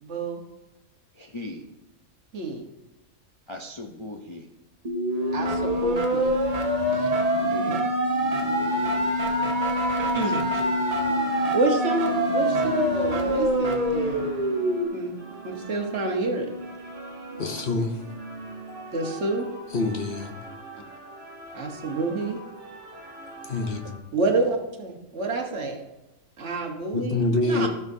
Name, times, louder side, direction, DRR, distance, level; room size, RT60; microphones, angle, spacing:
voice 1, 0.0-0.4 2.3-2.6 5.3-6.3 6.9-7.1 10.0-10.6 11.5-14.3 14.9-15.1 15.4-16.5 18.9-19.5 21.5-22.4 24.1-25.8 26.4-27.7, right 3 dB, 60° right, 1.5 m, -28 dB
voice 2, 1.1-1.6 3.5-4.5 7.4-7.8 8.4-8.8, left 2 dB, 30° left, 0.6 m, -38 dB
sound 1, 4.8-14.8, equal, 35° right, 0.9 m, -24 dB
sound 2, 10.3-24.0, right 1 dB, 80° right, 2.4 m, -41 dB
voice 3, 17.4-18.0 19.7-20.4 23.5-24.0 26.9-27.7, left 2 dB, 50° left, 1.0 m, -26 dB
14.5 x 6.0 x 2.7 m
omnidirectional pair, 1.4 m